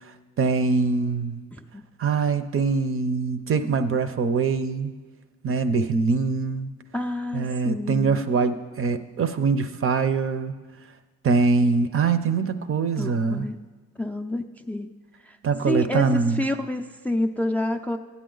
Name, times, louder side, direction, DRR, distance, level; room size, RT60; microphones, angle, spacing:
voice 1, 0.4-1.4 2.0-4.9 5.4-6.7 7.3-10.5 11.2-13.5 15.4-16.4, right 4 dB, 45° right, 11 dB, 0.6 m, -23 dB
voice 2, 1.5-1.8 6.9-8.2 13.0-13.6 14.0-14.9 15.2-15.4 15.7-18.0, left 1 dB, 5° left, 5 dB, 0.4 m, -28 dB
13.5 x 9.3 x 3.9 m, 1.4 s
cardioid pair, 90°, 30 cm